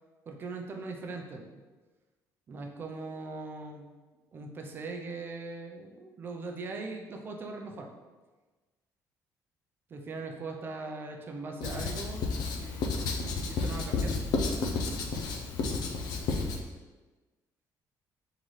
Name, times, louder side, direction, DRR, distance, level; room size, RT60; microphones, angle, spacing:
voice 1, 0.3-1.6 2.5-3.9 4.3-7.9 9.9-14.1, right 3 dB, 30° right, 2 dB, 0.5 m, -40 dB
Writing, 11.6-16.6, left 3 dB, 80° left, 0.5 m, -31 dB
4.0 x 3.7 x 3.2 m, 1.3 s
cardioid pair, 165°, 7 cm